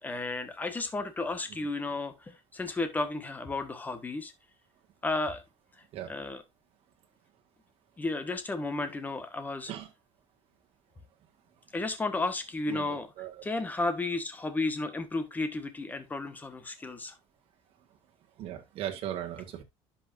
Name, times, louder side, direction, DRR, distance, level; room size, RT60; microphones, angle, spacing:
voice 1, 0.0-4.3 5.0-5.4 6.1-6.4 8.0-9.7 11.7-13.1 13.4-17.2, left 2 dB, 15° left, 1.3 m, -33 dB
voice 2, 12.7-13.5 18.4-19.6, right 11 dB, 50° right, 1.8 m, -38 dB
11.0 x 5.7 x 2.6 m
cardioid pair, 145°, 12 cm